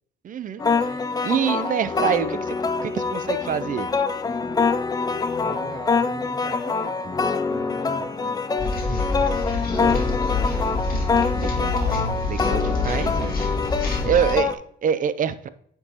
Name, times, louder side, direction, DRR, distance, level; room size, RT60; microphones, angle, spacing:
voice 1, 0.2-0.6 1.2-2.5 2.8-3.9 11.3-13.4 14.0-15.5, right 8 dB, 45° right, 14 dB, 0.4 m, -26 dB
sound 1, 0.6-14.6, left 4 dB, 20° left, 0.3 m, -25 dB
voice 2, 5.4-7.2 7.5-8.4 9.5-10.8, right 1 dB, ahead, -7 dB, 2.0 m, -39 dB
sound 2, 8.6-14.3, left 3 dB, 45° left, 1.8 m, -26 dB
9.1 x 4.5 x 2.9 m, 0.66 s
cardioid pair, 90°, 20 cm